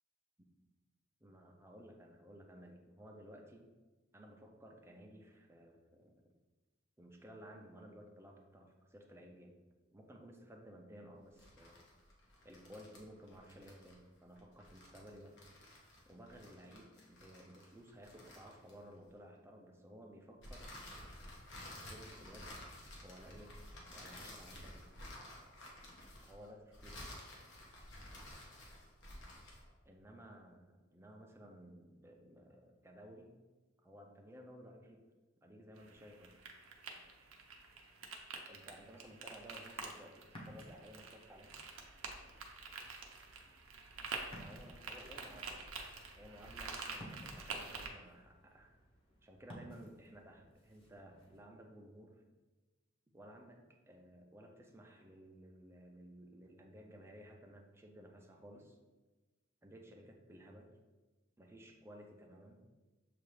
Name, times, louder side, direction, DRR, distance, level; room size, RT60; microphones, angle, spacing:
voice 1, 1.2-3.7 4.1-6.2 7.0-9.6 9.9-11.8 12.4-15.3 16.1-21.3 21.6-22.8 23.0-23.5 23.9-24.9 26.3-27.1 29.9-33.3 33.8-35.0 35.4-36.4 38.5-41.6 44.4-45.6 46.2-48.8 49.2-52.2 53.1-58.8 59.6-60.7 61.4-62.7, equal, 15° right, 1 dB, 0.5 m, -56 dB
sound 1, 11.3-19.1 20.4-29.7, left 1 dB, 60° left, 0.9 m, -53 dB
sound 2, 35.8-47.9, right 4 dB, 85° right, 0.6 m, -48 dB
Ocean, 40.2-51.4, equal, 25° left, 0.9 m, -57 dB
6.8 x 2.5 x 3.1 m, 1.2 s
head